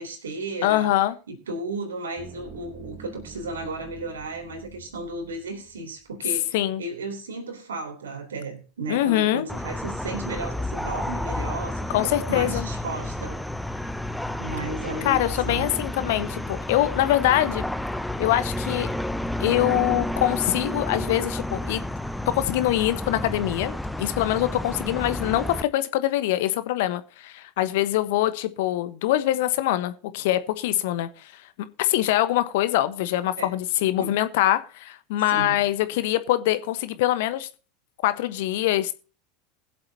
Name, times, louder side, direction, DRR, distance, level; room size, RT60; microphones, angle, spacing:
voice 1, 0.0-0.9 1.3-13.4 14.4-15.7 33.4-33.5 34.0-34.2 35.3-35.6, right 2 dB, 75° right, 3.5 m, -34 dB
voice 2, 0.6-1.2 6.5-6.8 8.9-9.5 11.9-12.7 15.0-17.7 18.2-18.9 19.4-21.8 22.3-31.1 31.8-37.5 38.0-38.9, left 14 dB, 60° left, 1.1 m, -24 dB
sound 1, 2.2-6.0, right 7 dB, 30° right, 1.9 m, -46 dB
sound 2, 9.5-25.6, left 1 dB, 5° left, 0.7 m, -31 dB
21.0 x 7.7 x 2.8 m
figure-of-eight pair, 80°, 0 cm